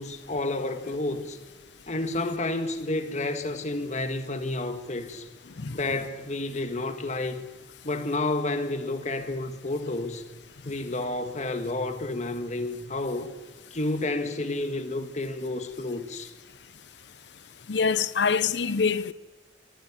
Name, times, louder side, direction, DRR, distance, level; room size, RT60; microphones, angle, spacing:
voice 1, 0.0-1.4 1.9-5.3 5.7-7.4 7.8-10.2 10.6-13.3 13.7-16.3, left 2 dB, 40° left, 1.6 m, -30 dB
voice 2, 17.7-19.1, left 5 dB, 70° left, 0.7 m, -25 dB
26.0 x 12.0 x 9.8 m
head